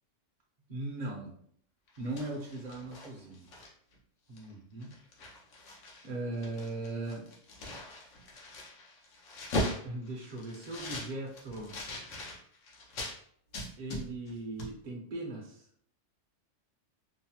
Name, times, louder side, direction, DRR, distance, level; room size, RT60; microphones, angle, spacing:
voice 1, 0.7-1.3 2.0-3.5 4.3-4.9 6.0-7.3 9.8-11.8 13.8-15.7, right 2 dB, 50° right, -2 dB, 0.6 m, -39 dB
sound 1, 1.9-3.9 4.4-4.5 4.8-6.1 6.3-13.2 13.5-14.3 14.6-14.7, left 1 dB, 85° left, 1.1 m, -40 dB
2.9 x 2.0 x 2.8 m, 0.62 s
omnidirectional pair, 1.3 m